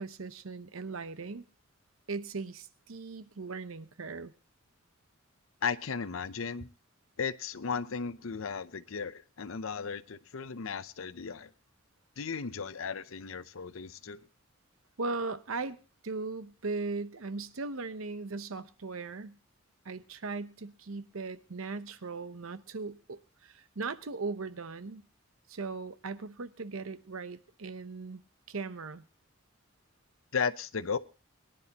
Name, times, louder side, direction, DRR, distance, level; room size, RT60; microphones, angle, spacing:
voice 1, 0.0-1.4 2.1-4.3 15.0-15.8 16.0-19.4 19.8-25.0 25.5-28.2 28.5-29.0, right 3 dB, 80° right, 0.8 m, -38 dB
voice 2, 5.6-6.7 7.2-11.5 12.2-14.2 30.3-31.0, left 5 dB, 75° left, 0.6 m, -35 dB
22.0 x 10.5 x 2.8 m
head